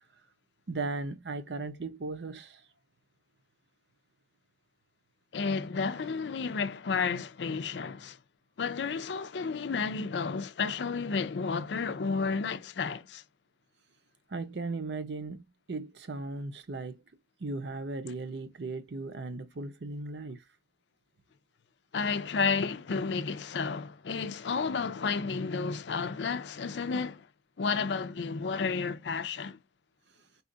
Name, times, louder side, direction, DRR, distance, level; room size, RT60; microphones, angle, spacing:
voice 1, 0.7-2.6 14.3-17.0 17.4-20.4, right 3 dB, 80° right, 0.7 m, -37 dB
voice 2, 5.3-8.2 8.6-13.2 21.9-27.3 27.6-29.6, left 5 dB, 85° left, 0.5 m, -31 dB
4.2 x 2.4 x 3.8 m
head